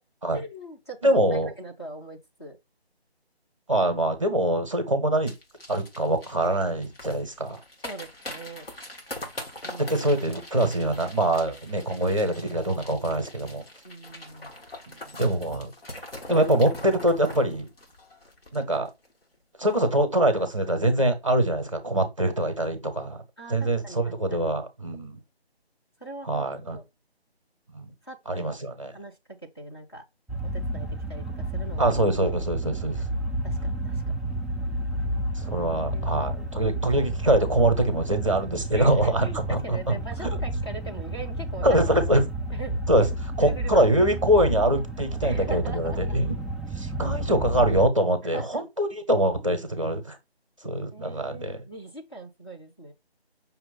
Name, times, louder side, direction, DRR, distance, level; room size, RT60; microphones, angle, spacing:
voice 1, 0.3-2.6 7.8-8.7 9.6-10.0 13.8-14.5 23.4-24.4 26.0-26.8 28.0-28.5 28.9-29.2 29.5-30.0 30.4-31.9 33.4-34.1 35.9-36.3 38.7-41.8 42.5-43.1 43.4-44.1 45.2-46.2 48.2-48.7 50.6-52.9, right 2 dB, 25° left, 0.7 m, -41 dB
voice 2, 1.0-1.5 3.7-5.3 5.7-7.6 9.9-13.6 14.9-15.7 16.3-17.7 18.5-18.9 19.6-23.2 23.5-25.2 26.2-26.8 27.7-27.9 28.3-28.9 31.8-33.0 35.4-39.8 40.2-40.3 41.6-42.2 42.9-43.1 43.4-46.4 46.8-50.2 50.6-51.6, right 1 dB, 30° right, 0.8 m, -24 dB
sound 1, 5.3-19.1 19.3-19.4 19.7-20.0 20.4-20.5, left 1 dB, 65° left, 1.6 m, -42 dB
sound 2, 30.3-47.9, right 1 dB, ahead, 0.3 m, -31 dB
5.6 x 2.4 x 3.9 m
figure-of-eight pair, 160°, 32 cm